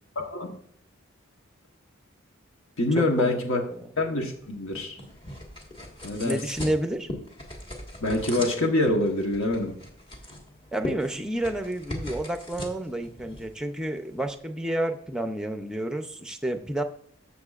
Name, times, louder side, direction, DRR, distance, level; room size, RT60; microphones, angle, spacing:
voice 1, 0.2-0.6 2.8-3.6 4.0-5.0 6.0-6.4 8.0-9.8, left 2 dB, 70° left, 2 dB, 1.2 m, -25 dB
voice 2, 3.0-3.4 3.7-3.8 6.2-7.1 10.7-16.8, right 1 dB, 5° right, 7 dB, 0.5 m, -30 dB
sound 1, 4.2-14.4, left 1 dB, 25° left, 1.6 m, -40 dB
13.5 x 6.9 x 2.4 m, 0.65 s
head